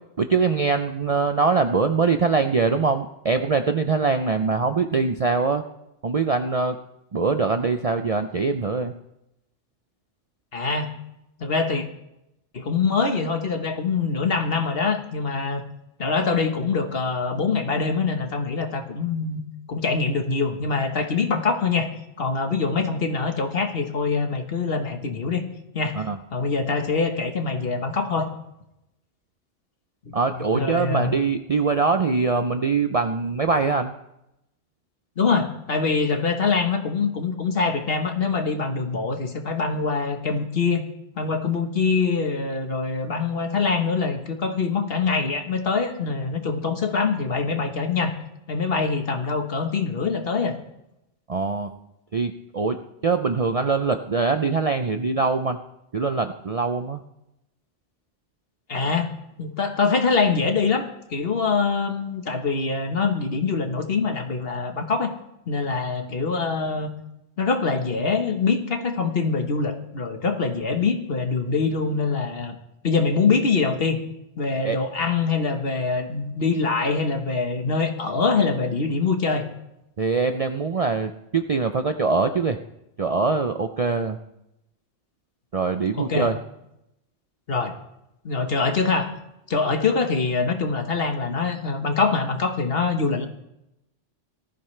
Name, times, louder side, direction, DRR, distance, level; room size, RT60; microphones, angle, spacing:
voice 1, 0.2-5.6 6.0-6.8 7.1-8.9 25.9-26.2 30.1-33.9 51.3-51.7 52.1-55.6 55.9-57.0 74.6-74.8 80.0-82.6 83.0-84.2 85.5-86.3, right 4 dB, 45° right, 7 dB, 0.5 m, -23 dB
voice 2, 10.5-10.9 11.4-11.9 12.5-15.6 16.0-19.4 19.7-21.9 22.2-25.5 25.7-26.0 26.3-28.3 30.5-31.2 35.2-40.8 41.2-48.1 48.5-50.6 58.7-59.1 59.4-60.8 61.1-65.1 65.5-66.9 67.4-72.5 72.8-74.0 74.4-79.5 86.0-86.3 87.5-87.8 88.2-89.1 89.5-93.3, left 4 dB, 50° left, 6 dB, 1.4 m, -24 dB
18.5 x 14.0 x 3.3 m, 0.86 s
omnidirectional pair, 1.3 m